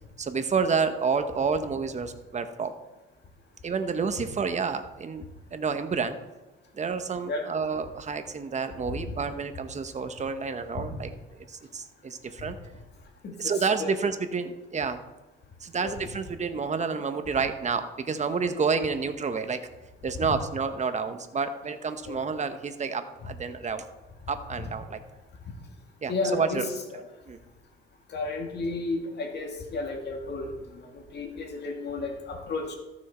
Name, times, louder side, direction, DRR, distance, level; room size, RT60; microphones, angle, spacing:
voice 1, 0.2-2.7 3.6-5.2 5.5-6.2 6.7-11.1 11.5-12.6 13.4-15.0 15.6-19.6 20.0-23.8 24.3-25.0 26.0-26.6 27.3-27.4, right 5 dB, 35° right, 9 dB, 1.1 m, -29 dB
voice 2, 13.2-13.9 15.8-15.9 22.1-22.2 24.6-24.7 26.1-27.0 28.1-32.8, left 3 dB, 60° left, 2 dB, 2.3 m, -33 dB
13.5 x 6.3 x 4.4 m, 1.1 s
cardioid pair, 90°, 20 cm